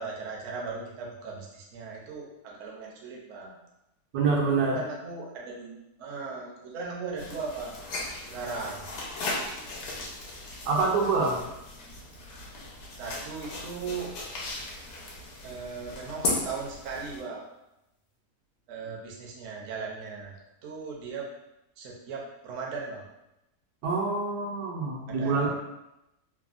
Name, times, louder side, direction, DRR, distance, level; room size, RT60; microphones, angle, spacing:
voice 1, 0.0-3.5 4.4-7.7 8.2-8.8 13.0-14.1 15.4-17.4 18.7-20.3 20.6-21.3 21.8-23.1 25.1-25.5, right 4 dB, 65° right, -2 dB, 0.8 m, -38 dB
voice 2, 4.1-4.8 10.7-11.4 23.8-25.5, right 4 dB, 85° right, -2 dB, 1.2 m, -26 dB
sound 1, 7.2-17.2, left 2 dB, 85° left, 1.2 m, -37 dB
3.3 x 2.0 x 2.4 m, 0.89 s
omnidirectional pair, 1.7 m